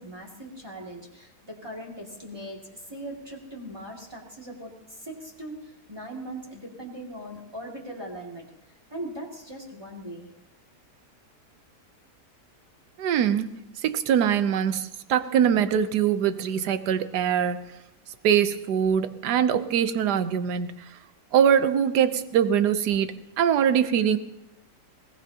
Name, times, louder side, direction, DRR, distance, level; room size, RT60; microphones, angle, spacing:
voice 1, 0.0-2.6 2.9-4.7 5.0-5.6 5.9-8.4 8.9-10.3, right 1 dB, 15° right, -2 dB, 2.3 m, -39 dB
voice 2, 13.0-13.5 13.8-17.6 18.2-20.7 21.3-24.2, right 8 dB, 80° right, 11 dB, 1.4 m, -23 dB
21.0 x 18.0 x 2.9 m, 0.87 s
omnidirectional pair, 1.8 m